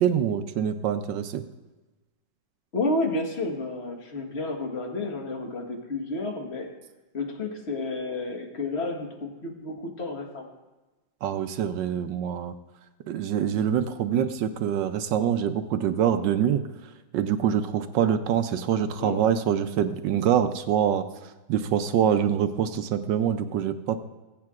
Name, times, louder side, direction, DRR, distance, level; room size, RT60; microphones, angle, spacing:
voice 1, 0.0-1.4 11.2-12.5 13.1-16.6 17.1-21.0 21.5-24.0, right 9 dB, 75° right, 9 dB, 1.1 m, -25 dB
voice 2, 2.7-6.7 7.1-10.5 19.0-19.2, left 2 dB, 35° left, 2 dB, 1.3 m, -31 dB
21.0 x 8.5 x 2.4 m, 1.1 s
omnidirectional pair, 2.3 m